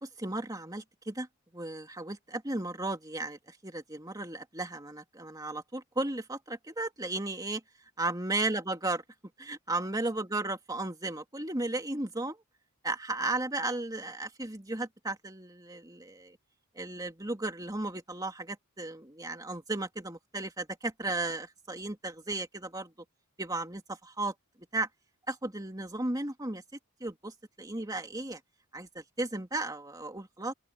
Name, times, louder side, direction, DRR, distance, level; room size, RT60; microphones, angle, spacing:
voice 1, 0.0-1.3 1.5-7.6 8.0-9.0 9.4-12.4 12.8-16.4 16.8-22.9 23.4-24.3 24.7-24.9 25.3-26.6 27.0-28.4 28.7-30.5, right 2 dB, 15° right, 2.5 m, -35 dB
open air
head